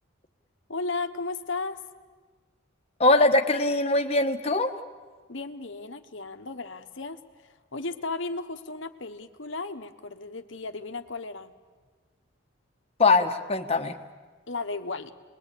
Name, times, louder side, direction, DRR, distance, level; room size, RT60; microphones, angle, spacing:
voice 1, 0.7-1.8 5.3-11.5 14.5-15.1, left 3 dB, 65° left, 8 dB, 1.3 m, -35 dB
voice 2, 3.0-4.7 13.0-14.0, left 2 dB, 30° left, 4 dB, 1.4 m, -22 dB
29.0 x 21.5 x 8.5 m, 1.5 s
head